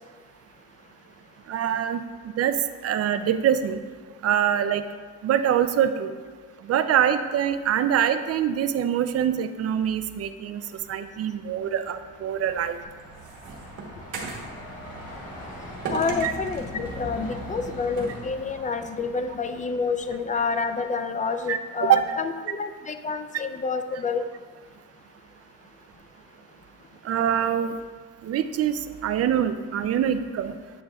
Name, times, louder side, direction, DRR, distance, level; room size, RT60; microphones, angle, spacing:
voice 1, 1.5-2.0 2.4-2.6 2.8-3.8 4.2-4.8 5.2-6.1 6.7-10.6 10.9-12.8 16.2-16.3 21.5-22.2 27.0-27.7 28.2-30.5, right 9 dB, 55° right, 10 dB, 0.4 m, -24 dB
Truck, 11.1-20.5, left 1 dB, 50° left, 1.7 m, -41 dB
sound 1, 12.6-14.5 15.8-16.7 18.0-18.2, right 3 dB, 85° right, 1.2 m, -34 dB
voice 2, 15.9-24.3, left 4 dB, 25° left, 8 dB, 0.4 m, -28 dB
8.3 x 6.4 x 2.3 m, 1.6 s
cardioid pair, 90°, 30 cm